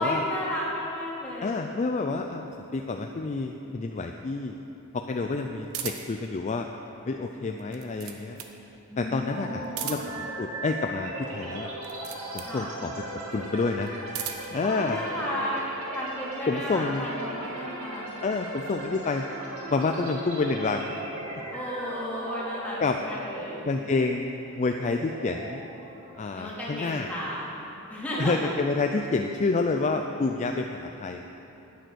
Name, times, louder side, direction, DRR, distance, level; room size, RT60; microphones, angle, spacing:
voice 1, 0.0-1.6 8.9-9.8 12.4-12.7 14.6-15.6 15.9-18.1 21.5-23.7 26.3-27.6 27.9-28.5, equal, 5° left, -7 dB, 2.6 m, -33 dB
voice 2, 1.4-4.6 4.9-6.7 7.1-8.4 9.0-11.7 12.3-12.9 13.3-13.9 14.5-15.0 16.5-17.1 18.2-19.2 19.7-20.9 21.3-21.4 22.8-23.0 23.7-25.6 26.2-27.1 28.2-31.2, left 3 dB, 35° left, 4 dB, 0.4 m, -28 dB
sound 1, 5.7-6.2 7.5-8.6 9.6-10.3 11.8-12.6 13.8-14.6, right 9 dB, 70° right, 0.9 m, -37 dB
sound 2, 9.3-27.0, right 1 dB, 85° right, 2.2 m, -38 dB
10.5 x 9.4 x 6.3 m, 3.0 s
head